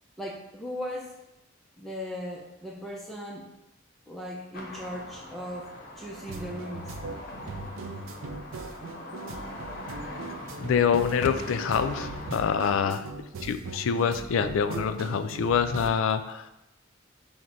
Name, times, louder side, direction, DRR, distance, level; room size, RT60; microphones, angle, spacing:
voice 1, 0.2-1.1 1.8-3.5 4.1-7.0 12.8-13.0, equal, ahead, -4 dB, 0.4 m, -38 dB
sound 1, 4.5-12.6, left 1 dB, 45° left, 0.7 m, -42 dB
sound 2, 6.3-15.9, right 3 dB, 85° right, 0.4 m, -39 dB
voice 2, 10.6-13.0 13.4-16.5, left 7 dB, 80° left, 10 dB, 0.3 m, -26 dB
6.0 x 2.1 x 3.8 m, 0.88 s
head